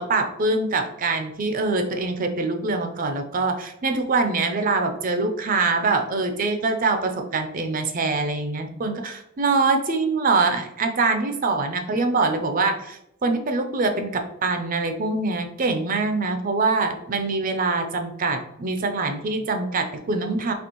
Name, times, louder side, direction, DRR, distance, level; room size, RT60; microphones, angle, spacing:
voice 1, 0.0-20.5, right 3 dB, 40° right, 6 dB, 0.4 m, -24 dB
4.2 x 2.9 x 2.9 m, 0.82 s
head